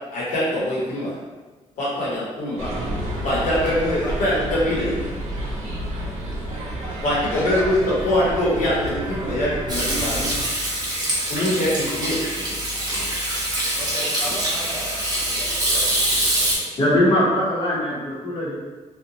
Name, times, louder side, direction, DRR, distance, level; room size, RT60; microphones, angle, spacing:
voice 1, 0.1-1.2 1.8-2.6 3.2-5.0 7.0-7.8 8.0-10.3 11.3-12.2, left 1 dB, 85° left, -6 dB, 0.9 m, -23 dB
sound 1, 2.6-10.4, right 1 dB, 75° right, 0.7 m, -30 dB
voice 2, 7.3-7.7 11.3-11.8 13.8-16.8 17.1-17.5, equal, 20° left, -5 dB, 0.4 m, -35 dB
Hands / Sink (filling or washing), 9.7-16.6, right 1 dB, 35° right, 0.9 m, -24 dB
voice 3, 16.8-18.6, left 1 dB, 45° left, -6 dB, 0.8 m, -21 dB
2.5 x 2.1 x 2.8 m, 1.3 s
cardioid pair, 140°, 12 cm